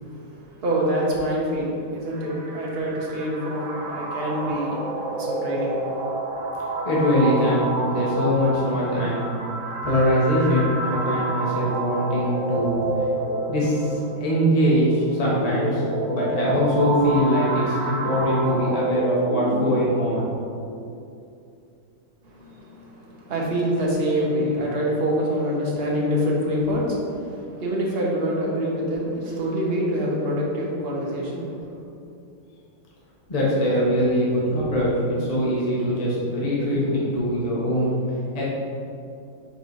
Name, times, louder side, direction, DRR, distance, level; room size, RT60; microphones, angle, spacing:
voice 1, 0.0-6.1 22.2-31.5, equal, 40° right, -4 dB, 1.0 m, -26 dB
sound 1, 2.1-20.0, right 2 dB, 75° right, 1.8 m, -29 dB
voice 2, 6.8-7.6 7.9-9.3 9.8-12.8 13.5-15.8 16.1-20.3 20.7-20.8 33.3-38.0 38.3-38.4, equal, 30° left, -6 dB, 0.7 m, -22 dB
5.3 x 4.0 x 4.6 m, 2.6 s
omnidirectional pair, 2.3 m